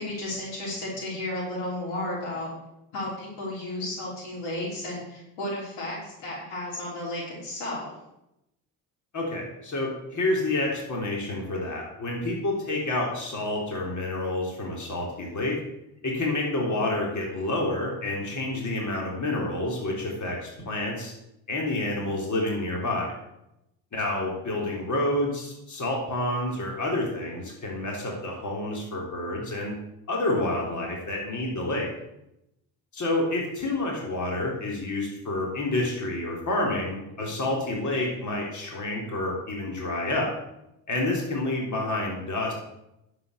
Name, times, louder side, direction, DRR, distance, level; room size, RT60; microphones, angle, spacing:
voice 1, 0.0-2.5 2.9-7.9, left 1 dB, 85° left, -4 dB, 5.5 m, -33 dB
voice 2, 9.1-15.6 16.0-21.1 21.5-23.1 23.9-29.7 30.1-31.9 32.9-40.3 40.9-42.5, left 2 dB, 40° left, -1 dB, 3.6 m, -29 dB
10.0 x 7.9 x 6.9 m, 0.86 s
supercardioid pair, 75°, 46 cm